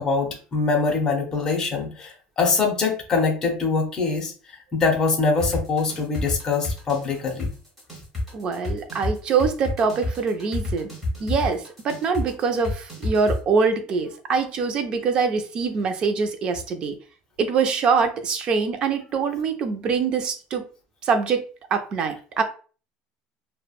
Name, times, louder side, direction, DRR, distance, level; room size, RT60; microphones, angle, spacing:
voice 1, 0.0-4.3 4.7-7.5, left 4 dB, 20° left, 1 dB, 0.6 m, -23 dB
sound 1, 5.4-13.4, left 2 dB, ahead, 1.2 m, -28 dB
voice 2, 8.3-10.9 11.2-17.0 17.4-20.6 21.0-21.4 21.7-22.4, right 5 dB, 30° right, 7 dB, 0.4 m, -24 dB
3.2 x 2.1 x 2.3 m, 0.38 s
cardioid pair, 170°, 3 cm